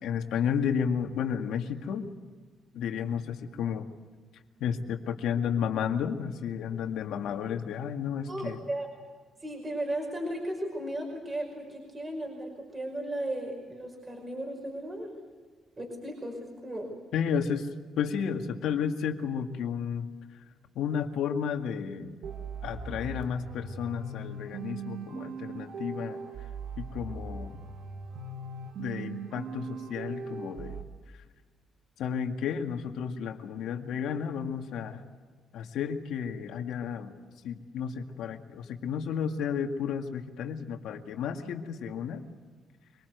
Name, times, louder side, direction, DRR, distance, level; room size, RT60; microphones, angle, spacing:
voice 1, 0.0-2.1 2.7-3.8 4.6-8.6 17.1-17.7 18.0-20.1 20.8-22.2 22.6-26.2 26.8-27.6 28.8-30.8 32.0-35.1 35.5-37.1 37.4-42.2, left 7 dB, 80° left, 5 dB, 2.0 m, -32 dB
voice 2, 8.3-8.9 9.4-15.2 15.8-16.9, right 1 dB, 25° right, 1 dB, 5.6 m, -35 dB
sound 1, 22.2-30.8, right 4 dB, 75° right, 2.2 m, -40 dB
25.0 x 19.5 x 8.1 m, 1.5 s
cardioid pair, 90°, 0 cm